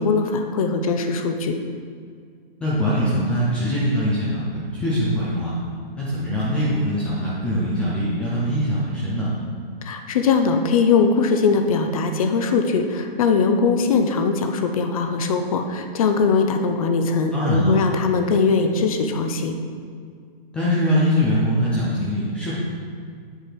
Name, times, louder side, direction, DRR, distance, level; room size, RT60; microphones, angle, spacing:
voice 1, 0.0-1.6 9.8-19.6, left 4 dB, 35° left, 6 dB, 0.7 m, -21 dB
voice 2, 2.6-5.5 6.0-9.3 17.3-17.8 20.5-22.5, equal, 5° left, -9 dB, 0.5 m, -22 dB
8.1 x 6.6 x 4.4 m, 2.1 s
hypercardioid pair, 145°, 30 cm